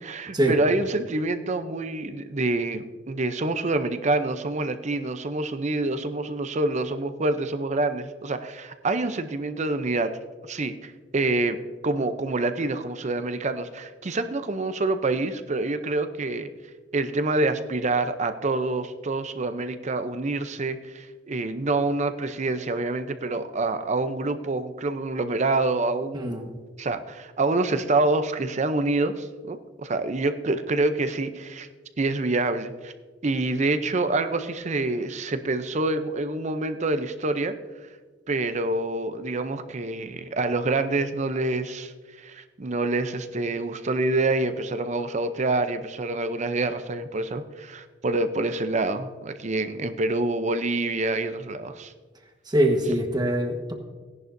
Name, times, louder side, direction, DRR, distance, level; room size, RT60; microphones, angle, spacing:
voice 1, 0.0-10.1 10.5-11.6 11.8-16.5 16.9-26.4 26.8-31.7 32.0-32.9 33.2-37.5 38.3-41.9 42.2-51.9, right 2 dB, 40° right, 10 dB, 0.6 m, -26 dB
voice 2, 52.5-53.7, right 1 dB, 25° right, 3 dB, 1.3 m, -23 dB
17.0 x 11.0 x 2.7 m, 1.4 s
head